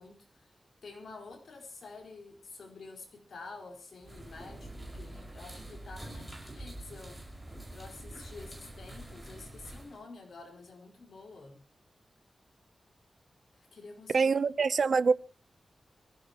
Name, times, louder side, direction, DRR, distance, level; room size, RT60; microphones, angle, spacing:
voice 1, 0.0-7.2 7.7-11.7 13.5-14.5, left 3 dB, 70° left, 4.5 m, -49 dB
sound 1, 4.0-10.0, right 1 dB, 5° right, 5.5 m, -45 dB
voice 2, 14.1-15.1, right 5 dB, 55° right, 0.7 m, -25 dB
24.0 x 16.5 x 3.0 m
wide cardioid pair, 165°, 0 cm